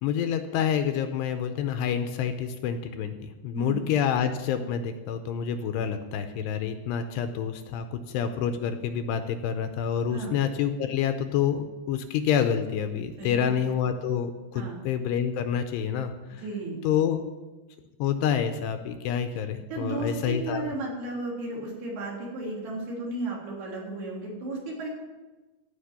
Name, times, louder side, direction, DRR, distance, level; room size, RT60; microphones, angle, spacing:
voice 1, 0.0-16.4 16.8-17.2 18.0-20.7, left 8 dB, 80° left, 8 dB, 2.7 m, -28 dB
voice 2, 3.5-3.9 10.1-10.3 13.2-13.8 14.5-14.8 16.3-16.8 19.7-24.9, right 2 dB, 60° right, -4 dB, 5.3 m, -34 dB
15.0 x 5.9 x 9.5 m, 1.2 s
omnidirectional pair, 5.2 m